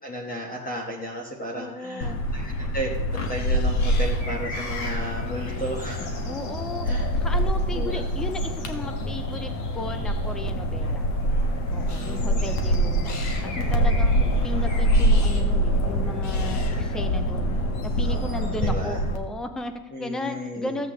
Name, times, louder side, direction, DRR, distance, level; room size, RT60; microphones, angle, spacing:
voice 1, 0.0-6.1 6.8-7.0 7.7-8.0 12.0-12.5 14.1-14.3 18.0-19.0 19.9-20.8, equal, 20° left, -1 dB, 1.3 m, -34 dB
voice 2, 1.5-2.2 6.2-11.1 11.7-13.2 13.4-14.1 14.4-17.6 17.8-20.9, left 1 dB, ahead, 8 dB, 0.3 m, -35 dB
sound 1, 2.0-19.2, equal, 40° left, 1.4 m, -25 dB
sound 2, 3.8-15.4, left 2 dB, 90° left, 2.5 m, -43 dB
14.0 x 8.1 x 3.8 m, 1.3 s
cardioid pair, 150°, 44 cm